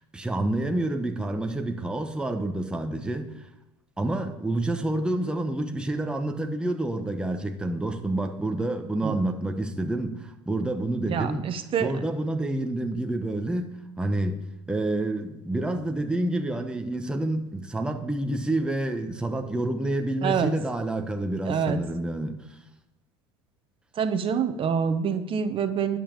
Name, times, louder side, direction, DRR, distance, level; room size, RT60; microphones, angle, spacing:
voice 1, 0.0-3.5 4.0-11.5 11.8-22.6, right 1 dB, 5° right, 5 dB, 1.0 m, -28 dB
voice 2, 11.1-11.9 20.2-20.5 21.4-21.8 23.9-26.0, right 7 dB, 40° right, 9 dB, 1.1 m, -26 dB
11.5 x 5.5 x 7.3 m, 0.90 s
supercardioid pair, 100°, 14 cm